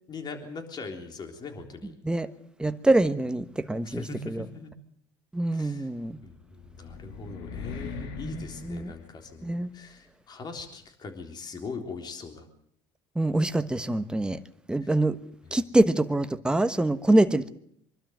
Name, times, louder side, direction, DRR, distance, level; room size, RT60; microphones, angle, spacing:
voice 1, 0.1-2.0 3.8-4.7 5.5-5.9 6.2-12.5 14.8-14.9 15.4-15.6, left 4 dB, 40° left, 3.7 m, -41 dB
voice 2, 2.6-4.4 5.3-6.2 8.2-8.9 9.4-9.7 13.1-14.4 14.7-15.2 15.5-17.5, right 2 dB, 5° right, 1.2 m, -25 dB
sound 1, 6.2-9.7, left 5 dB, 80° left, 2.7 m, -40 dB
24.0 x 12.5 x 9.3 m
supercardioid pair, 95°, 11 cm